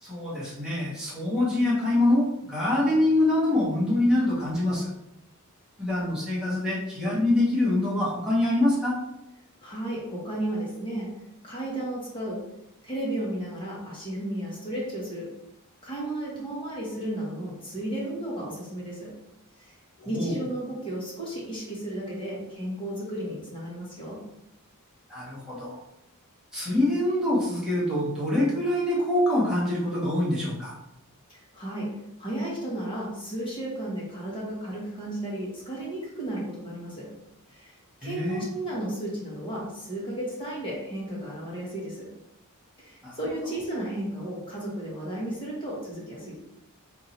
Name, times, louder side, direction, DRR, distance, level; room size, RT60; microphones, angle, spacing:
voice 1, 0.0-4.9 5.8-9.0 20.0-20.4 25.1-25.8 26.5-30.8 38.0-38.4 43.0-43.1, left 1 dB, 5° right, -8 dB, 1.4 m, -25 dB
voice 2, 9.6-11.1 11.4-12.4 12.8-15.3 15.8-19.1 19.6-19.7 20.0-24.2 31.3-37.1 37.5-42.1 42.8-46.4, right 1 dB, 25° left, -6 dB, 1.4 m, -34 dB
3.7 x 2.7 x 4.2 m, 0.85 s
head